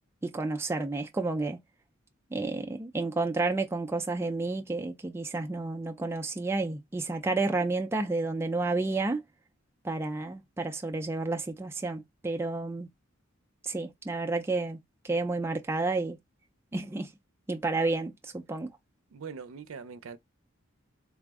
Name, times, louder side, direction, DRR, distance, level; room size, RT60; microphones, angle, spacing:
voice 1, 0.2-1.6 2.3-9.2 9.8-12.9 13.6-14.8 15.0-16.2 16.7-17.1 17.5-18.7, right 3 dB, 10° right, 0.3 m, -31 dB
voice 2, 19.1-20.2, right 5 dB, 85° right, 0.5 m, -42 dB
3.4 x 2.0 x 3.4 m
head